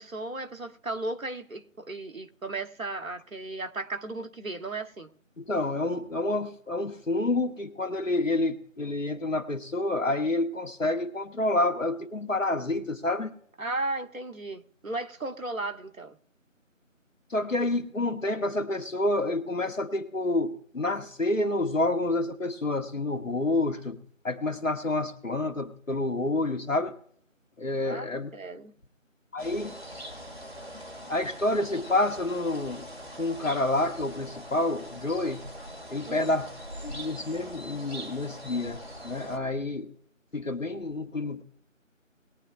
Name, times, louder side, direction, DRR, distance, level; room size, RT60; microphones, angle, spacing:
voice 1, 0.0-5.1 13.6-16.2 27.8-28.7 36.1-36.3, right 2 dB, 85° right, 1.2 m, -35 dB
voice 2, 5.4-13.4 17.3-24.0 24.2-27.0 27.6-28.3 29.3-29.7 31.1-32.9 33.2-35.4 35.9-36.5 36.8-39.9 40.3-41.4, left 2 dB, 70° left, 1.6 m, -28 dB
sound 1, 29.4-39.4, equal, 50° right, 2.0 m, -42 dB
20.5 x 10.0 x 2.4 m
figure-of-eight pair, 180°, 40 cm